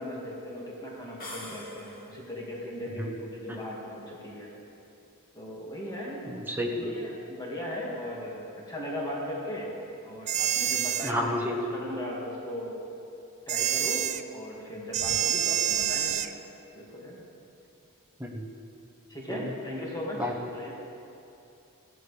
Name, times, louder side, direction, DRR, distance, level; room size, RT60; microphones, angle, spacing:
voice 1, 0.0-4.5 5.3-6.2 6.7-9.7 10.0-11.4 11.7-12.8 13.5-16.2 16.7-17.2 19.1-20.8, left 1 dB, 20° left, -5 dB, 2.1 m, -37 dB
sound 1, 1.2-2.3, left 1 dB, 40° left, 3.0 m, -43 dB
voice 2, 6.3-6.9 11.0-11.7 18.2-18.5 19.3-19.5 20.2-20.5, left 1 dB, 10° right, 1 dB, 1.1 m, -31 dB
sound 2, 10.3-11.1 13.5-14.2 14.9-16.3, right 10 dB, 30° right, 0.3 m, -27 dB
16.5 x 13.0 x 3.4 m, 2.7 s
head